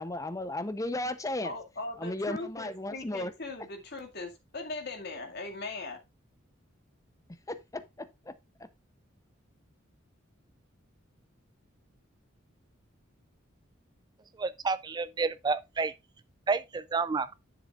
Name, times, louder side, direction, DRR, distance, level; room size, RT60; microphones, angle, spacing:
voice 1, 0.0-1.5 2.0-3.3 7.5-8.7, left 1 dB, 15° left, 0.6 m, -35 dB
voice 2, 1.4-6.0, left 2 dB, 55° left, 2.1 m, -39 dB
voice 3, 14.3-15.9 16.5-17.3, right 4 dB, 20° right, 0.3 m, -30 dB
10.5 x 6.9 x 2.4 m
head